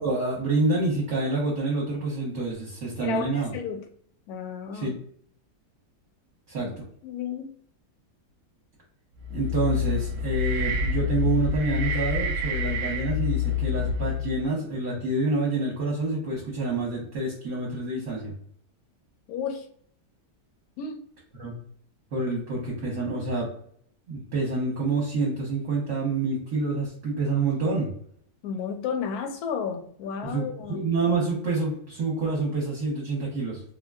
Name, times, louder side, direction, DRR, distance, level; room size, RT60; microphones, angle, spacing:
voice 1, 0.0-3.5 4.7-4.9 6.5-6.8 9.3-18.3 21.4-21.5 22.1-23.5 24.1-27.9 30.2-33.6, right 3 dB, 55° right, -3 dB, 1.0 m, -27 dB
voice 2, 3.0-3.8 4.3-4.9 7.0-7.5 19.3-19.6 20.8-21.0 28.4-30.8, left 6 dB, 70° left, 6 dB, 1.0 m, -32 dB
sound 1, 9.2-14.5, left 5 dB, 75° right, 1.1 m, -27 dB
3.6 x 2.2 x 2.3 m, 0.62 s
omnidirectional pair, 1.9 m